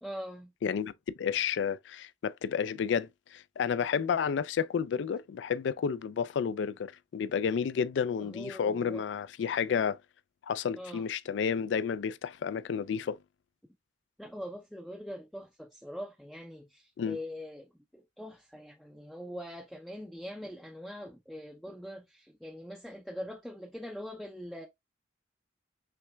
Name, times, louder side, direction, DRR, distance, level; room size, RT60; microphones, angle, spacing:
voice 1, 0.0-0.5 8.2-9.0 10.8-11.0 14.2-24.7, equal, ahead, 0.4 m, -43 dB
voice 2, 0.6-0.9 1.2-10.0 10.4-13.2 17.0-17.2, left 7 dB, 75° left, 0.3 m, -31 dB
5.7 x 3.3 x 2.2 m
head